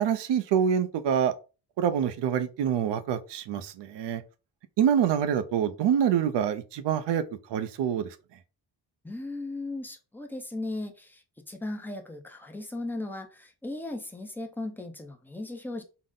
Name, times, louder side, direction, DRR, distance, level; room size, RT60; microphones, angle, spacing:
voice 1, 0.0-1.3 1.8-4.2 4.8-7.2 7.5-8.2, right 8 dB, 80° right, 0.6 m, -26 dB
voice 2, 9.0-15.8, left 2 dB, 5° left, 0.6 m, -37 dB
3.8 x 2.0 x 3.7 m
cardioid pair, 120°, 42 cm